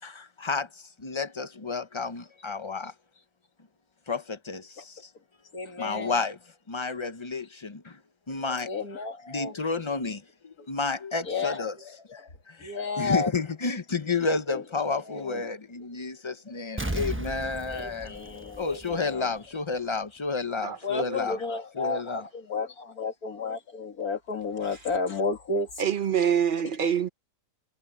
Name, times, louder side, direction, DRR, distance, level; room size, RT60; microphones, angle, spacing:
voice 1, 0.0-2.9 4.1-5.1 5.8-8.0 8.3-9.0 9.3-11.8 12.1-18.2 18.6-21.4 21.7-22.3, left 4 dB, 30° left, 0.6 m, -31 dB
voice 2, 5.5-6.1 8.7-9.5 11.3-11.7 12.6-13.3 14.5-14.6 14.9-15.4 17.7-19.3 20.8-25.7, left 4 dB, 60° left, 2.7 m, -32 dB
Explosion, 16.8-19.4 19.7-19.8, right 1 dB, 10° right, 0.7 m, -35 dB
voice 3, 25.8-27.1, right 8 dB, 40° right, 0.8 m, -25 dB
omnidirectional pair, 1.8 m